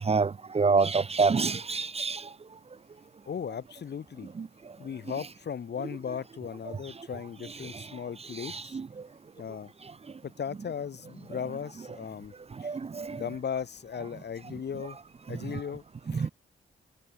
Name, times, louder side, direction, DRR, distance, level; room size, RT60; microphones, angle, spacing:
voice 1, 0.1-2.2 4.4-4.5 8.4-8.9 12.6-13.3 16.1-16.3, right 4 dB, 35° right, 0.7 m, -27 dB
voice 2, 3.3-4.3 4.8-8.8 9.4-9.7 10.2-12.3 12.6-12.8 13.1-15.0 15.3-16.3, left 7 dB, 60° left, 3.6 m, -37 dB
cardioid pair, 60°, 19 cm